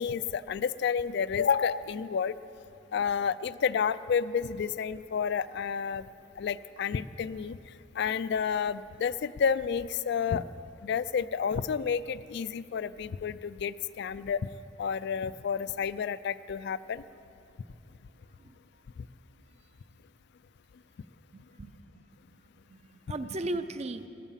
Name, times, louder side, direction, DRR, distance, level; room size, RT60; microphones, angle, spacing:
voice 1, 0.0-2.4 2.9-6.1 6.4-10.4 10.8-14.5 14.8-17.0, left 7 dB, 65° left, 15 dB, 0.3 m, -30 dB
voice 2, 21.3-22.0 22.7-24.0, right 2 dB, 35° right, 10 dB, 0.6 m, -36 dB
14.5 x 13.5 x 5.7 m, 2.8 s
head